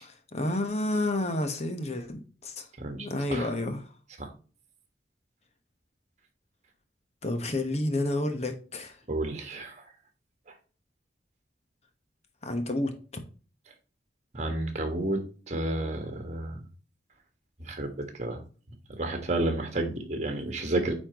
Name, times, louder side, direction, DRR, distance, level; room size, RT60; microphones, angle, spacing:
voice 1, 0.0-2.7 3.0-3.9 7.2-9.0 12.4-12.9, left 1 dB, 40° left, 7 dB, 1.2 m, -30 dB
voice 2, 2.8-3.5 4.2-4.3 9.1-9.8 14.3-16.6 17.7-18.4 19.0-20.9, right 2 dB, 40° right, 5 dB, 1.7 m, -31 dB
8.7 x 4.3 x 3.0 m, 0.37 s
head